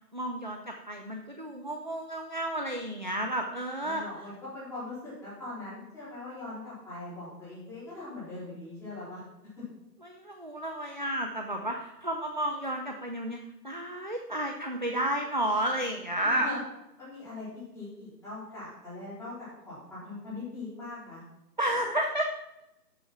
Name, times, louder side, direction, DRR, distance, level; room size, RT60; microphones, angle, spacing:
voice 1, 0.1-4.0 10.0-13.4 13.6-16.5 21.6-22.2, right 1 dB, 30° right, 2 dB, 0.5 m, -31 dB
voice 2, 3.8-9.2 16.2-16.6 17.0-17.5 17.7-19.3 19.7-21.2, left 2 dB, 5° left, -10 dB, 4.1 m, -41 dB
13.0 x 6.3 x 6.0 m, 0.89 s
figure-of-eight pair, 160°, 50 cm